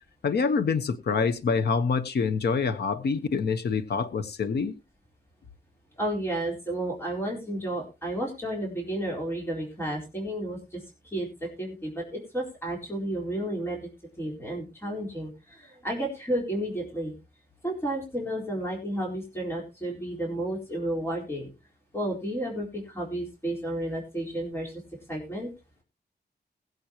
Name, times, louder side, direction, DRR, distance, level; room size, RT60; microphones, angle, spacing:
voice 1, 0.2-4.7, left 5 dB, 65° left, 1.1 m, -26 dB
voice 2, 6.0-13.9 14.2-17.1 17.6-21.5 21.9-24.8 25.1-25.5, right 1 dB, 15° left, 4.2 m, -32 dB
21.5 x 7.9 x 3.0 m
wide cardioid pair, 175°, 18 cm